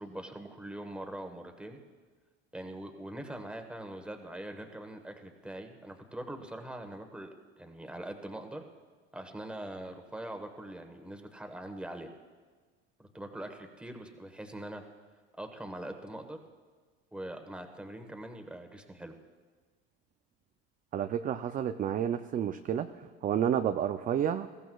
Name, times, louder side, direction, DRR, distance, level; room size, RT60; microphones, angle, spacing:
voice 1, 0.0-1.8 2.5-7.3 7.6-8.6 9.1-12.1 13.0-14.8 15.4-16.4 17.1-19.1, right 1 dB, 5° right, 5 dB, 1.2 m, -42 dB
voice 2, 20.9-22.9 23.2-24.5, right 9 dB, 30° right, 8 dB, 0.4 m, -30 dB
20.5 x 15.5 x 2.3 m, 1.5 s
supercardioid pair, 110°, 31 cm